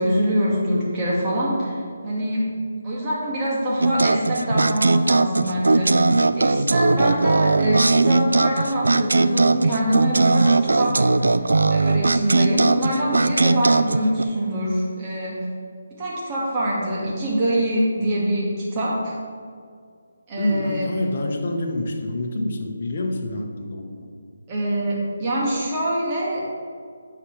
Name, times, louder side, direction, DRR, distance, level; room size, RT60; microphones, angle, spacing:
voice 1, 0.0-2.5 2.8-11.1 11.7-15.4 15.9-19.2 20.3-20.9 24.5-26.4, right 1 dB, 25° right, -5 dB, 1.8 m, -24 dB
sound 1, 3.8-14.2, right 3 dB, 85° right, 0.3 m, -19 dB
voice 2, 20.4-24.1, left 1 dB, 45° left, 2 dB, 1.0 m, -27 dB
9.2 x 6.0 x 3.2 m, 2.1 s
hypercardioid pair, 165°, 0 cm